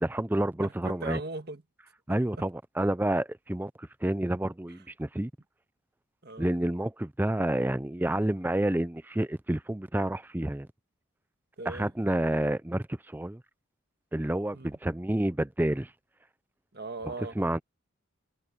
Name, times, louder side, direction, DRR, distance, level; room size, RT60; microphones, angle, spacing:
voice 1, 0.0-1.2 2.1-5.3 6.4-10.7 11.7-13.4 14.1-15.9 17.4-17.6, right 1 dB, 10° right, 0.4 m, -29 dB
voice 2, 0.6-1.6 2.1-2.5 6.2-6.5 11.6-11.9 14.5-14.7 16.7-17.4, right 3 dB, 50° right, 1.6 m, -39 dB
head